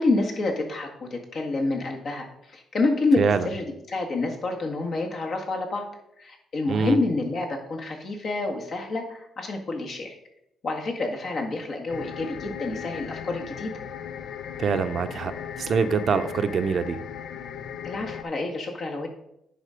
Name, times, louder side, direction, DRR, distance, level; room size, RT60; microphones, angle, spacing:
voice 1, 0.0-5.9 6.2-10.2 10.6-13.7 17.8-19.1, left 2 dB, 55° left, 1 dB, 1.8 m, -28 dB
voice 2, 3.2-3.5 6.7-7.0 14.6-17.0, right 5 dB, 55° right, 10 dB, 0.6 m, -24 dB
sound 1, 11.9-18.2, left 8 dB, 70° left, 0.5 m, -37 dB
10.0 x 4.1 x 5.0 m, 0.82 s
cardioid pair, 90°, 0 cm